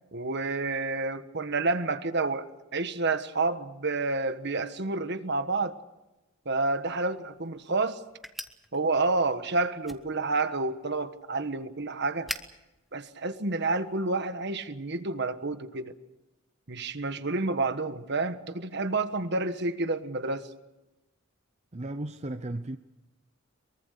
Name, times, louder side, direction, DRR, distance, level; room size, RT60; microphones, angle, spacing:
voice 1, 0.1-5.7 6.4-8.0 8.7-12.3 12.9-15.9 16.7-20.5, right 3 dB, 55° right, 10 dB, 1.4 m, -29 dB
Zippo Lighter, 6.9-14.0, equal, ahead, 1.2 m, -46 dB
voice 2, 21.7-22.8, right 1 dB, 35° right, 9 dB, 0.7 m, -35 dB
23.5 x 23.0 x 6.8 m, 1.0 s
head